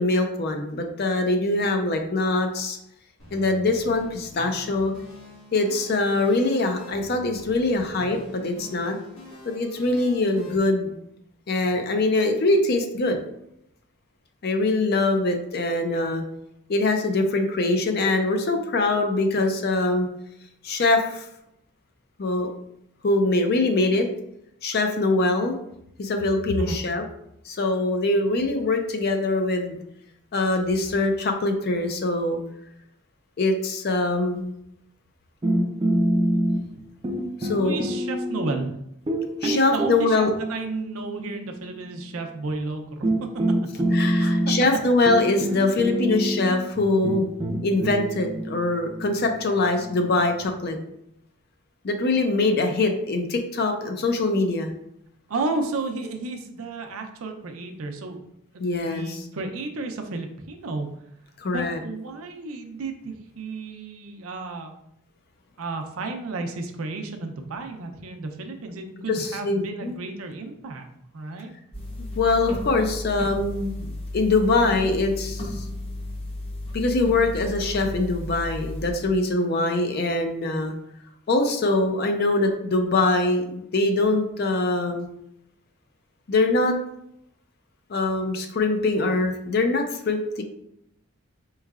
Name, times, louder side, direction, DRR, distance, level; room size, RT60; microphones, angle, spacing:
voice 1, 0.0-2.8 3.3-4.9 5.5-9.0 9.4-10.9 11.5-13.2 14.4-16.2 16.7-20.1 20.6-21.3 22.2-22.5 23.0-24.1 24.6-25.6 26.0-27.0 27.4-29.8 30.3-32.4 33.4-34.5 37.4-37.8 39.4-40.3 43.9-47.3 47.6-50.8 51.8-54.7 58.6-59.2 61.4-61.8 69.1-69.9 72.1-73.7 74.1-75.6 76.7-80.7 81.3-85.1 86.3-86.8 87.9-90.4, left 2 dB, 50° left, 5 dB, 0.5 m, -23 dB
sound 1, 3.2-10.6, left 1 dB, 70° left, 1.2 m, -45 dB
sound 2, 35.4-36.8 37.0-38.7 39.1-41.5 42.5-42.6 43.0-50.5, right 1 dB, 25° right, 0.4 m, -26 dB
voice 2, 37.6-38.8 39.4-43.1 43.7-43.8 44.2-44.3 55.3-58.2 58.5-60.9 61.5-64.7 65.6-70.9 71.1-71.5, right 3 dB, 85° right, 5 dB, 0.5 m, -32 dB
sound 3, 71.7-78.9, left 1 dB, 25° left, 0.8 m, -33 dB
4.5 x 3.1 x 2.4 m, 0.78 s
head